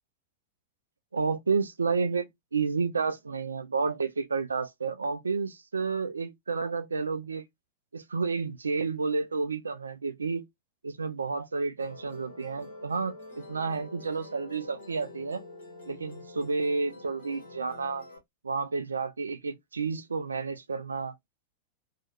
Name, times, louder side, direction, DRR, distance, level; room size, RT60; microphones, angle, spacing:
voice 1, 1.1-7.4 7.9-10.5 10.8-15.4 15.9-18.0 18.4-21.1, right 4 dB, 75° right, 0.4 m, -31 dB
Musical instrument, 11.8-18.2, left 2 dB, 60° left, 1.1 m, -47 dB
2.8 x 2.3 x 2.9 m
figure-of-eight pair, 90°, 0 cm